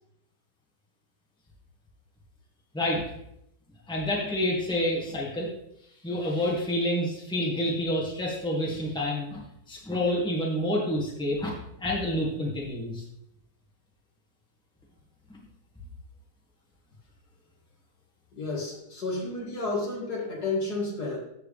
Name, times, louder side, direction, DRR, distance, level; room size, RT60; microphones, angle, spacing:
voice 1, 3.9-5.5 6.0-9.4 9.7-11.5 11.8-13.0, left 1 dB, 5° left, -3 dB, 1.8 m, -28 dB
voice 2, 18.3-21.2, left 3 dB, 60° left, -3 dB, 2.7 m, -31 dB
14.0 x 4.8 x 3.4 m, 0.77 s
omnidirectional pair, 1.9 m